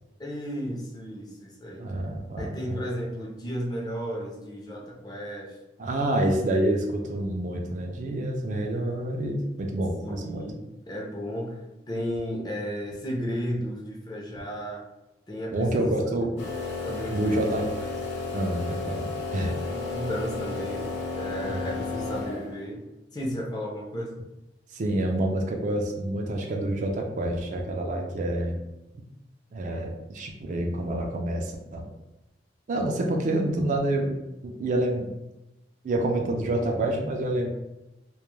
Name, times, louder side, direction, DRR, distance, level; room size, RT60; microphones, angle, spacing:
voice 1, 0.2-1.9 2.4-5.5 10.0-11.6 11.9-14.8 15.3-15.9 16.8-17.4 19.7-22.8 23.1-24.2, equal, 25° left, -2 dB, 0.5 m, -34 dB
voice 2, 1.8-2.8 5.8-10.4 15.5-16.4 17.1-17.7 18.3-19.6 21.5-21.8 24.7-28.6 29.5-31.8 32.7-34.2 34.4-35.1 35.8-37.5, right 1 dB, 45° right, 2 dB, 0.3 m, -27 dB
sound 1, 16.4-22.7, left 3 dB, 90° left, 0.6 m, -33 dB
2.2 x 2.1 x 3.0 m, 0.95 s
head